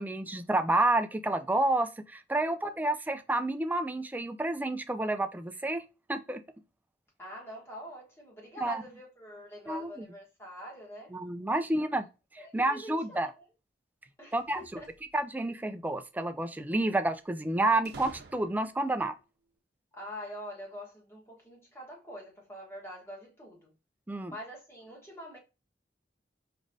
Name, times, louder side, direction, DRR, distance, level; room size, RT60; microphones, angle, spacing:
voice 1, 0.0-5.8 6.1-6.4 8.6-8.8 9.7-9.9 11.1-12.1 12.5-13.3 14.3-14.6 15.1-19.1 24.1-24.3, right 2 dB, 10° right, 0.3 m, -29 dB
voice 2, 2.4-2.8 7.2-11.1 11.8-11.9 12.4-13.5 14.2-14.9 19.9-23.7 24.3-25.4, equal, 15° left, 1.3 m, -45 dB
sound 1, 14.3-15.4 17.9-18.9, right 3 dB, 60° right, 0.7 m, -50 dB
5.0 x 3.3 x 2.6 m
head